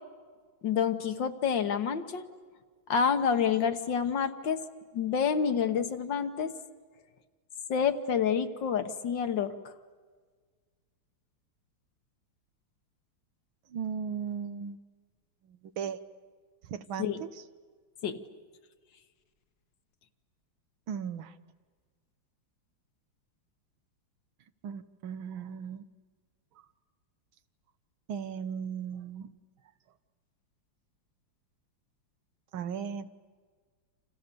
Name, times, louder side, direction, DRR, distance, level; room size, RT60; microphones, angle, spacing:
voice 1, 0.6-2.2 2.9-4.6 4.9-6.5 7.7-9.5 17.0-17.2 18.0-18.2, left 7 dB, 65° left, 8 dB, 1.9 m, -28 dB
voice 2, 13.7-14.8 15.5-16.0 16.6-17.4 20.9-21.4 24.6-25.8 28.1-29.3 32.5-33.1, right 7 dB, 85° right, 12 dB, 1.8 m, -37 dB
29.5 x 27.5 x 6.9 m, 1.5 s
omnidirectional pair, 2.2 m